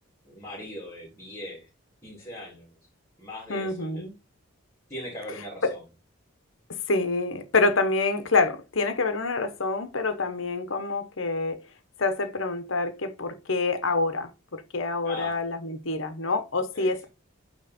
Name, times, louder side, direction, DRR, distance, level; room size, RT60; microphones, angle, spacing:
voice 1, 0.2-1.7 2.0-2.7 3.2-4.0 4.9-5.8 15.0-15.4 16.7-17.1, left 1 dB, 15° left, 2.8 m, -40 dB
voice 2, 3.5-4.1 5.6-5.7 6.9-11.6 12.0-17.0, left 3 dB, 70° left, 1.0 m, -27 dB
9.0 x 3.2 x 4.2 m
head